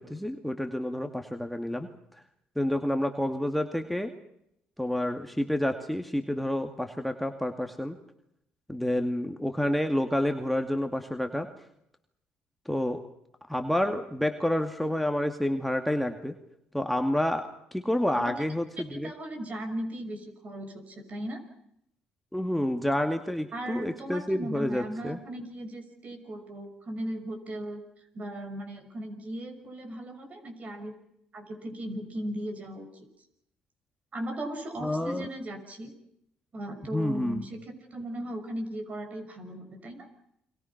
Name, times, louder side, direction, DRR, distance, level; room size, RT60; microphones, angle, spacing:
voice 1, 0.0-1.9 2.6-4.1 4.8-8.0 8.7-11.5 12.7-13.0 13.5-16.3 16.7-17.4 17.7-19.1 22.3-25.2 34.8-35.3 36.9-37.4, left 1 dB, ahead, 5 dB, 2.2 m, -29 dB
voice 2, 18.8-21.4 23.5-27.8 28.1-30.9 31.3-33.1 34.1-35.9 36.5-40.1, right 1 dB, 40° right, 6 dB, 6.5 m, -37 dB
29.5 x 23.5 x 6.0 m, 0.78 s
supercardioid pair, 75°, 4 cm